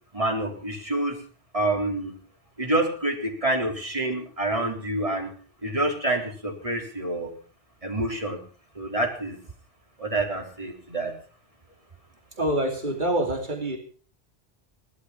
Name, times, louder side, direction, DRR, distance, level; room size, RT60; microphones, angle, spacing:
voice 1, 0.1-1.2 1.5-2.1 2.6-5.3 5.6-7.3 7.8-8.4 8.7-9.4 10.0-11.1, right 1 dB, 35° right, 1 dB, 4.2 m, -27 dB
voice 2, 12.4-13.8, right 1 dB, 50° right, 3 dB, 3.2 m, -26 dB
18.5 x 12.5 x 5.9 m, 0.41 s
omnidirectional pair, 1.0 m